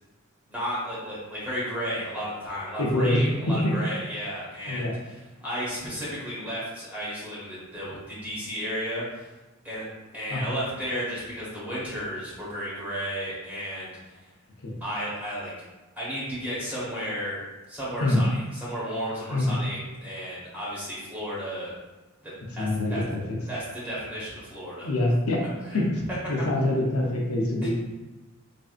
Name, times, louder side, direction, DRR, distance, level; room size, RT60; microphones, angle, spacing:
voice 1, 0.5-9.3 9.6-9.8 10.1-14.0 14.8-15.5 16.0-17.4 17.7-21.7 22.2-23.0 23.5-24.9 25.7-25.8 26.4-26.5 27.6-27.7, equal, 10° right, -8 dB, 1.1 m, -33 dB
voice 2, 2.8-3.2 3.6-3.7 4.7-4.9 10.3-10.5 14.6-14.7 18.0-18.2 19.3-19.6 22.6-23.2 24.8-25.4 25.7-25.8 26.3-27.7, left 1 dB, 75° left, -2 dB, 0.6 m, -25 dB
3.3 x 2.7 x 2.4 m, 1.2 s
head